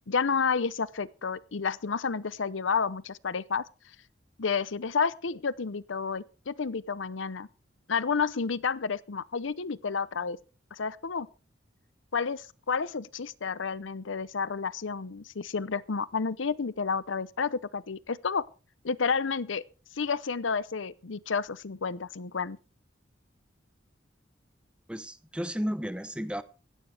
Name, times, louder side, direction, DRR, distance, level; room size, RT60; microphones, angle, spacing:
voice 1, 0.1-3.6 4.4-7.5 7.9-10.4 10.7-11.3 12.1-18.4 18.8-19.6 19.9-22.6, left 5 dB, 85° left, 0.7 m, -30 dB
voice 2, 24.9-26.4, equal, 5° right, 0.8 m, -33 dB
16.5 x 15.0 x 3.4 m
head